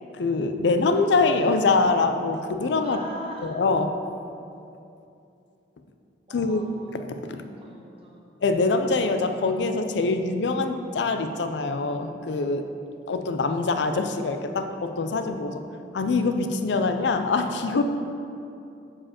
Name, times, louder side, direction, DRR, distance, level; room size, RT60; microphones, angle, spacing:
voice 1, 0.1-3.0 3.4-3.9 6.3-6.6 7.3-7.4 8.4-12.7 13.1-15.6 15.9-17.8, left 3 dB, 70° left, 7 dB, 0.4 m, -24 dB
voice 2, 2.8-3.5 6.3-6.9 7.2-8.2, right 1 dB, 35° right, -3 dB, 1.1 m, -41 dB
7.4 x 4.8 x 4.2 m, 2.7 s
head